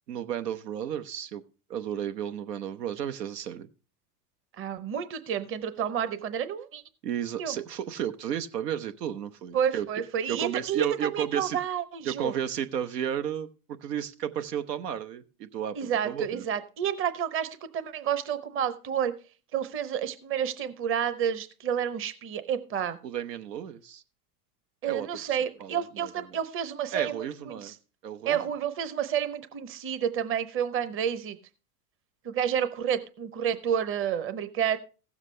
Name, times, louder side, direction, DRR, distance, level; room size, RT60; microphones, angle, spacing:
voice 1, 0.1-1.4 1.7-3.7 7.0-9.9 10.3-11.6 12.0-13.5 13.8-16.4 23.0-24.0 24.9-26.4 26.9-27.7 28.0-28.4, right 9 dB, 85° right, 10 dB, 0.9 m, -33 dB
voice 2, 4.6-6.8 7.4-7.6 9.5-12.3 15.8-19.1 19.5-23.0 24.8-27.7 28.3-31.4 32.2-34.8, right 8 dB, 25° right, 13 dB, 0.8 m, -30 dB
15.5 x 7.4 x 3.2 m, 0.34 s
hypercardioid pair, 105°, 48 cm